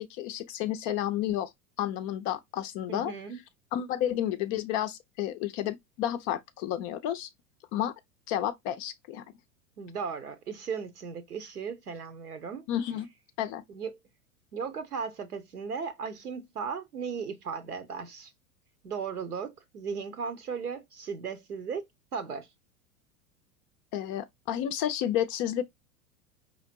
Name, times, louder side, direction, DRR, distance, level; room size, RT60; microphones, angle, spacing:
voice 1, 0.0-1.5 1.8-3.1 3.7-7.3 7.7-7.9 8.3-9.2 12.7-13.1 13.4-13.6 23.9-25.6, left 11 dB, 30° left, 0.4 m, -31 dB
voice 2, 2.9-3.4 9.8-12.6 13.7-14.0 14.5-18.3 18.8-21.8 22.1-22.5, right 6 dB, 85° right, 1.1 m, -36 dB
4.9 x 3.0 x 2.7 m
figure-of-eight pair, 90°, 45 cm